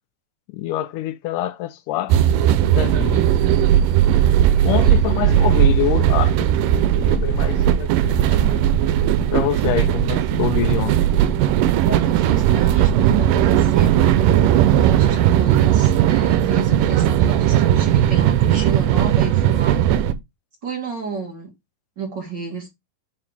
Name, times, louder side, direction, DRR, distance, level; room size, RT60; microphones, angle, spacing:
voice 1, 0.5-2.3 2.6-3.3 4.6-8.6 9.2-11.0, left 13 dB, 80° left, 2.2 m, -26 dB
sound 1, 2.1-20.1, right 11 dB, 85° right, 2.4 m, -17 dB
voice 2, 4.6-5.0 11.9-19.8 20.6-21.5 22.0-22.7, right 4 dB, 40° right, 1.9 m, -31 dB
8.8 x 3.8 x 3.4 m
omnidirectional pair, 3.7 m